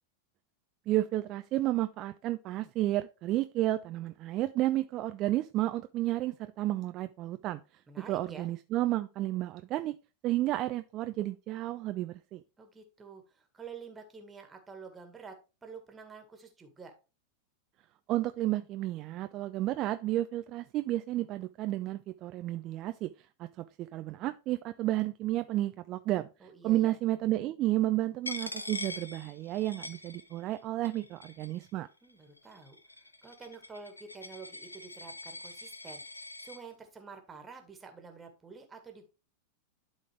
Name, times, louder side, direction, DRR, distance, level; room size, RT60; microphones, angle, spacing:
voice 1, 0.9-7.6 8.0-9.9 10.2-12.4 18.1-23.1 23.4-26.3 26.6-31.9, right 15 dB, 35° right, 11 dB, 0.4 m, -31 dB
voice 2, 7.9-8.5 12.6-15.3 15.6-16.9 26.4-26.9 32.0-32.8 33.2-39.1, right 5 dB, 15° right, 5 dB, 1.7 m, -49 dB
Coin (dropping), 28.2-30.6 30.8-31.7 32.4-36.6, left 2 dB, 85° left, 0.6 m, -43 dB
11.5 x 3.9 x 3.3 m, 0.30 s
figure-of-eight pair, 90°, 0 cm